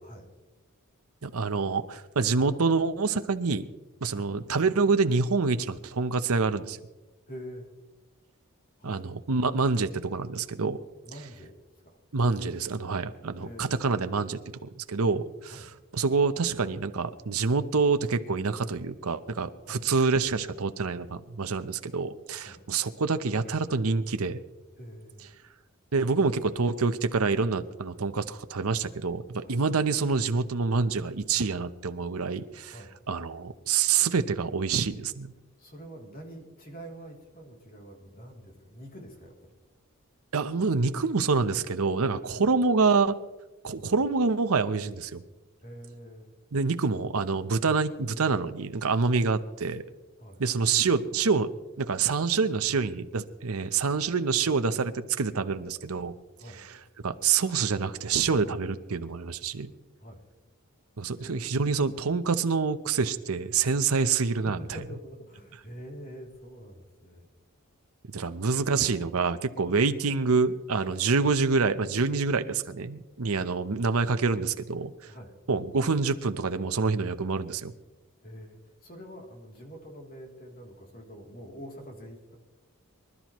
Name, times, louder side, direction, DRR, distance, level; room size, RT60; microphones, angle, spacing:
voice 1, 1.2-3.7 4.0-6.8 8.8-10.8 12.1-14.4 14.7-24.4 25.9-32.8 33.1-35.3 40.3-43.1 43.6-45.2 46.5-49.8 50.4-51.5 51.8-56.1 56.5-59.7 61.0-64.6 68.1-74.9 75.5-77.7, right 4 dB, 75° right, 10 dB, 0.8 m, -27 dB
voice 2, 7.3-7.7 8.8-9.0 11.0-11.5 11.8-12.0 13.4-13.9 15.4-15.7 19.6-19.8 22.3-22.6 24.8-25.4 29.4-29.6 32.7-33.0 35.6-39.5 42.3-42.4 43.6-43.9 45.6-46.3 50.2-50.4 56.4-56.6 60.0-60.2 61.2-61.4 64.3-67.3 69.6-69.8 70.9-71.0 75.1-75.3 78.2-82.4, equal, 40° left, 0 dB, 3.0 m, -45 dB
24.5 x 12.5 x 3.1 m, 1.1 s
head